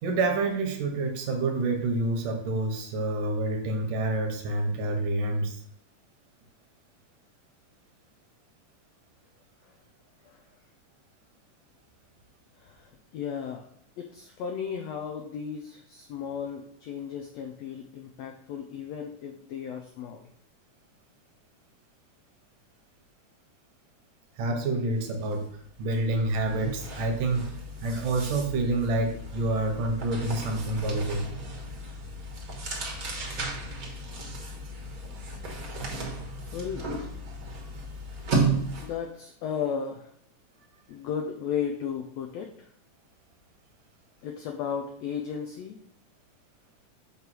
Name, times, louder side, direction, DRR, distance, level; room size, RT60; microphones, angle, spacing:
voice 1, 0.0-5.6 24.4-27.5 27.8-31.3, right 2 dB, 75° right, 3 dB, 2.6 m, -28 dB
voice 2, 12.6-13.6 14.0-20.3 35.5-35.6 36.5-36.9 38.8-40.1 40.9-42.7 44.2-45.8, left 7 dB, 85° left, 3 dB, 1.5 m, -35 dB
sound 1, 25.1-25.3 25.6-39.1, right 2 dB, 45° right, 1.1 m, -34 dB
7.9 x 3.3 x 6.1 m, 0.66 s
omnidirectional pair, 3.9 m